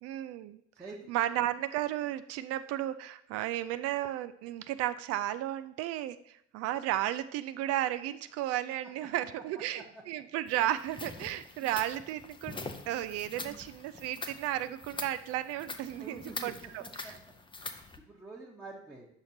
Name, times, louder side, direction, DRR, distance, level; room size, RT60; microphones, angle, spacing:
voice 1, 0.0-0.6 1.1-17.1, right 13 dB, 45° right, 12 dB, 0.5 m, -34 dB
voice 2, 0.7-1.1 9.7-10.0 11.2-11.3 11.5-11.7 12.9-13.6 15.9-17.1 17.6-19.1, right 3 dB, 5° right, -6 dB, 1.2 m, -49 dB
sound 1, 10.5-18.0, left 3 dB, 15° left, 0.7 m, -44 dB
9.4 x 6.3 x 2.9 m, 0.73 s
figure-of-eight pair, 65°, 35 cm